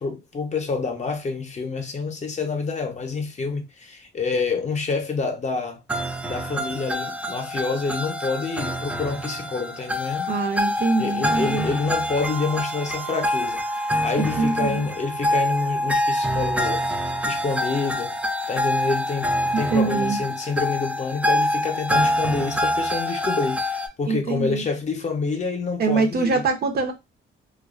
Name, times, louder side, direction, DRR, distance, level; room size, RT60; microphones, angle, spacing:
voice 1, 0.0-5.8 6.2-10.3 11.0-16.9 17.2-18.1 18.5-26.4, left 4 dB, 35° left, 0.6 m, -27 dB
sound 1, 5.9-23.9, left 1 dB, 5° right, 0.4 m, -26 dB
voice 2, 10.3-11.7 14.2-14.9 19.7-20.2 24.1-24.6 25.8-26.9, right 4 dB, 50° right, 0.6 m, -24 dB
2.3 x 2.2 x 2.3 m
cardioid pair, 90°, 20 cm